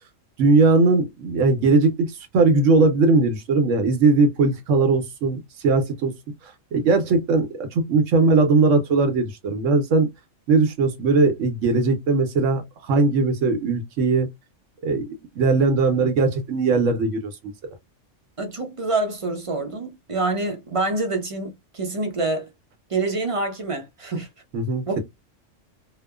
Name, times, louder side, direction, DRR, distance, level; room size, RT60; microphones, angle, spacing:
voice 1, 0.4-2.1 2.3-6.1 6.7-10.1 10.5-14.3 14.8-15.0 15.4-17.3 24.5-24.8, right 3 dB, 80° right, 1.1 m, -19 dB
voice 2, 18.4-22.5 22.9-24.3 24.9-25.0, right 3 dB, 40° right, 0.5 m, -26 dB
2.9 x 2.1 x 2.3 m
omnidirectional pair, 1.3 m